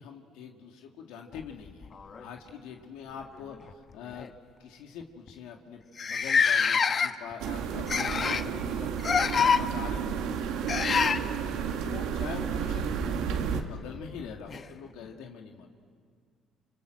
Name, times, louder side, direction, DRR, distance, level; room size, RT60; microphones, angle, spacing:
voice 1, 0.0-1.9 2.2-4.3 4.6-10.2 10.9-11.1 11.8-15.7, left 7 dB, 85° left, 2 dB, 2.0 m, -44 dB
sound 1, 1.3-2.5 3.5-3.7 4.1-4.3 5.0-5.1 5.3-5.4 6.0-7.3 7.9-8.5 9.0-9.6 10.7-11.2 13.3-13.4 14.5-14.6, left 6 dB, 40° left, 1.0 m, -25 dB
sound 2, 7.4-13.6, right 7 dB, 80° right, 1.9 m, -32 dB
27.5 x 27.5 x 7.8 m, 2.1 s
cardioid pair, 95°, 0 cm